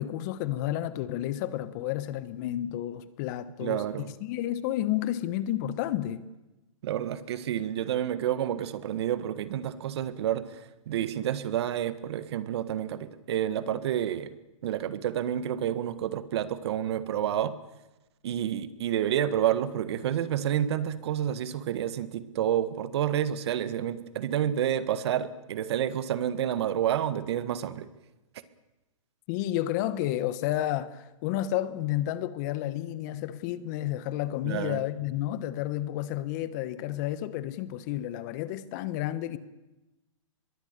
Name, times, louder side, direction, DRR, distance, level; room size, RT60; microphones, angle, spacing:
voice 1, 0.0-3.8 4.2-6.2 29.3-39.4, left 13 dB, 35° left, 1.2 m, -31 dB
voice 2, 3.6-4.1 6.8-14.4 14.6-17.5 18.2-27.9 34.4-34.8, right 10 dB, 50° right, 1.7 m, -29 dB
24.0 x 22.0 x 6.8 m
hypercardioid pair, 150°, 17 cm